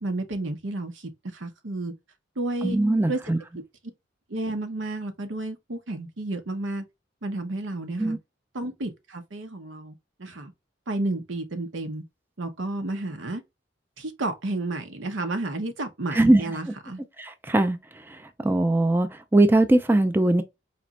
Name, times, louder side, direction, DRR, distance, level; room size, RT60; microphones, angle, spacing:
voice 1, 0.0-1.9 2.4-2.8 3.1-3.2 4.3-6.8 7.2-8.2 8.5-10.5 10.9-12.0 12.4-13.4 14.0-17.0, right 2 dB, 90° right, 0.9 m, -31 dB
voice 2, 2.6-3.4 8.0-8.2 16.1-16.4 17.2-17.8 18.1-20.4, right 1 dB, 10° right, 0.4 m, -21 dB
4.2 x 3.0 x 2.4 m
head